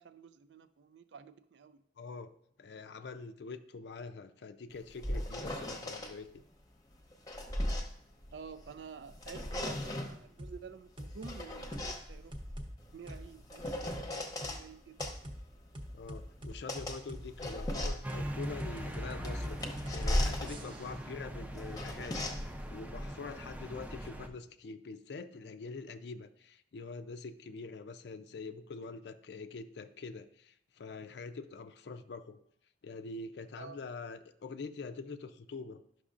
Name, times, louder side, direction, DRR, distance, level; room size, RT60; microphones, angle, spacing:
voice 1, 0.0-1.8 8.3-12.4 12.9-15.0 33.6-33.8, right 6 dB, 70° right, 12 dB, 0.4 m, -50 dB
voice 2, 2.0-2.3 2.6-6.4 15.9-22.3 22.7-32.4 32.8-35.8, left 4 dB, 65° left, 10 dB, 0.4 m, -45 dB
sound 1, 4.7-6.1 6.9-8.7 9.1-10.2 11.0-14.6 15.0-24.1, left 1 dB, 20° left, 0.8 m, -38 dB
sound 2, 10.4-10.6 11.0-11.4 11.7-11.9 12.3-12.7 13.1-13.2 13.6-14.0 14.4-14.5 15.0-15.4 15.7-21.0, equal, 30° right, 0.8 m, -43 dB
sound 3, 18.0-24.3, equal, 10° right, 0.4 m, -42 dB
11.5 x 6.1 x 2.5 m, 0.69 s
head